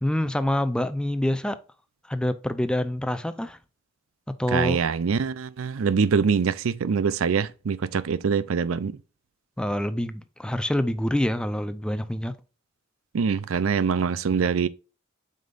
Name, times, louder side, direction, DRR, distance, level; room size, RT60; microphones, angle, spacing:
voice 1, 0.0-1.6 2.1-3.6 4.4-4.8 9.6-12.3, left 1 dB, 5° left, 0.5 m, -26 dB
voice 2, 4.5-9.0 13.1-14.7, right 6 dB, 85° right, 0.5 m, -24 dB
7.6 x 5.3 x 2.5 m
head